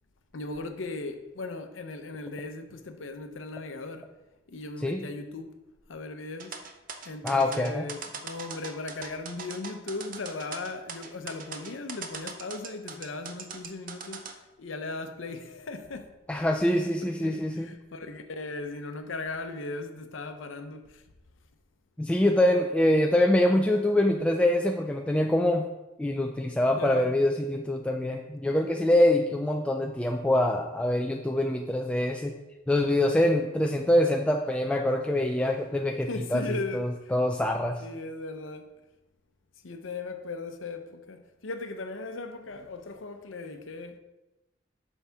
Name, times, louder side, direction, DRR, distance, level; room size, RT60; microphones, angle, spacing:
voice 1, 0.3-4.1 4.5-5.5 5.9-6.6 7.0-16.1 16.6-21.0 26.7-27.1 36.1-37.1 37.8-38.7 39.6-44.0, left 3 dB, 90° left, 0.7 m, -38 dB
sound 1, 6.4-14.3, right 6 dB, 45° right, 0.6 m, -40 dB
voice 2, 7.2-7.9 16.3-17.7 22.0-25.7 26.0-32.3 32.7-37.8, left 1 dB, 5° left, 0.3 m, -25 dB
8.1 x 5.6 x 3.5 m
head